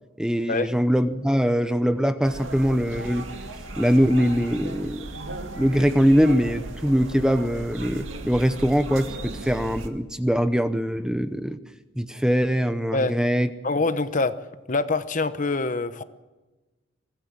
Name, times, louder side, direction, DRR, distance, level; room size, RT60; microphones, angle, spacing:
voice 1, 0.2-3.3 3.8-5.1 5.5-11.6 12.0-13.5, equal, 5° right, 10 dB, 0.8 m, -22 dB
sound 1, 2.2-9.9, right 2 dB, 85° right, 2.0 m, -36 dB
voice 2, 13.6-14.4 14.7-16.0, left 3 dB, 40° left, 12 dB, 1.0 m, -25 dB
23.5 x 16.5 x 7.5 m, 1.1 s
head